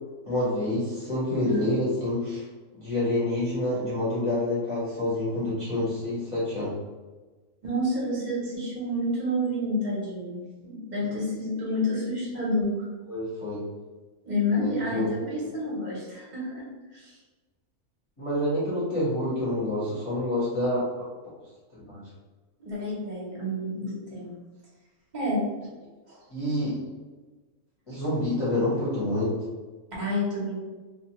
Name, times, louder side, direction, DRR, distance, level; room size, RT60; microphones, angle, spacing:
voice 1, 0.2-2.4 2.8-6.7 13.1-13.6 14.5-15.1 18.2-20.9 21.9-22.0 26.3-26.8 27.9-29.3, left 1 dB, 25° left, -10 dB, 0.8 m, -27 dB
voice 2, 7.6-12.9 14.2-16.7 16.9-17.1 22.6-24.3 25.1-25.4 26.1-26.2 30.0-30.6, left 1 dB, 40° right, -5 dB, 0.8 m, -29 dB
2.4 x 2.3 x 2.8 m, 1.3 s
omnidirectional pair, 1.5 m